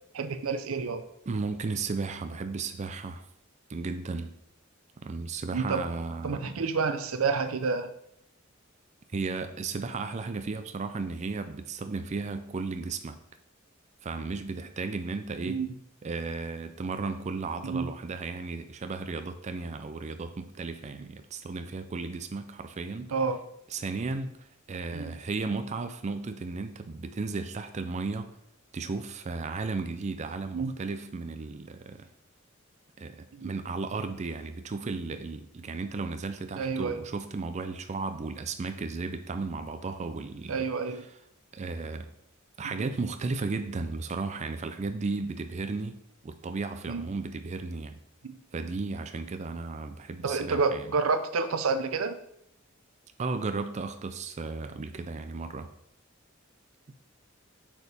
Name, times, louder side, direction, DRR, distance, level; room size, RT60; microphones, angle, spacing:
voice 1, 0.1-1.1 5.5-5.9 6.2-7.9 15.4-15.7 17.6-17.9 23.1-23.4 24.9-25.1 30.5-30.7 33.3-33.5 36.6-37.0 40.5-41.0 42.6-42.9 46.9-47.1 48.2-48.3 50.2-52.2, right 4 dB, 90° right, 10 dB, 0.6 m, -29 dB
voice 2, 1.3-3.2 3.7-4.3 5.0-6.6 9.1-13.2 14.0-15.6 16.0-23.1 23.7-28.3 28.7-32.1 33.0-40.6 41.5-42.1 42.6-48.0 48.5-50.9 53.2-55.7, right 3 dB, 35° right, 9 dB, 0.4 m, -34 dB
8.1 x 4.6 x 3.4 m, 0.75 s
head